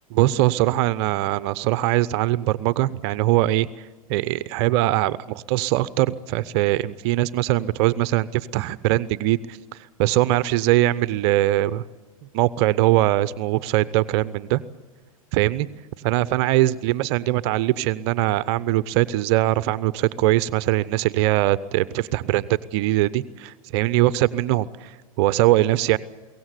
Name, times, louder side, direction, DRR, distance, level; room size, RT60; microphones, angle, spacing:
voice 1, 0.1-9.6 10.0-11.8 12.3-14.6 15.3-15.7 16.0-26.0, right 15 dB, 45° right, 18 dB, 0.6 m, -21 dB
23.0 x 17.5 x 8.2 m, 1.3 s
hypercardioid pair, 95°, 19 cm